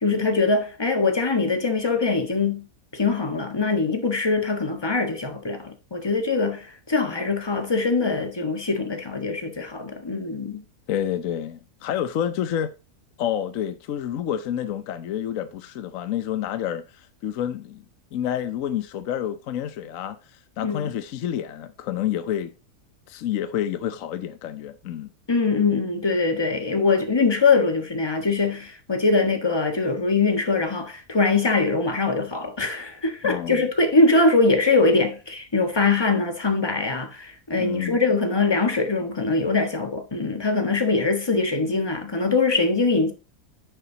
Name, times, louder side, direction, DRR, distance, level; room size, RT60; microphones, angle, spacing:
voice 1, 0.0-2.7 2.9-10.6 20.6-20.9 25.3-43.1, left 3 dB, 15° left, 1.3 m, -22 dB
voice 2, 10.9-12.7 13.2-17.8 18.1-20.2 20.6-22.5 23.1-25.1 33.2-33.7 37.6-38.0, left 10 dB, 65° left, 1.0 m, -29 dB
10.0 x 6.9 x 2.8 m
omnidirectional pair, 1.6 m